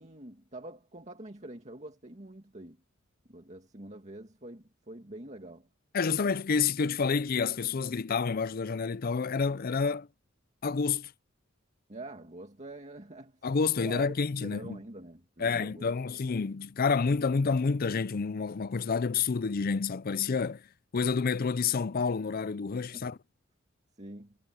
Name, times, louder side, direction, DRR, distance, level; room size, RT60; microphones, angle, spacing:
voice 1, 0.0-2.8 3.3-5.7 11.9-13.4 13.8-14.2 14.4-16.0 22.9-23.1 24.0-24.4, right 1 dB, 35° right, 2.1 m, -45 dB
voice 2, 5.9-10.1 10.6-11.1 13.4-14.8 15.4-20.6 20.9-23.2, left 5 dB, 45° left, 0.5 m, -29 dB
head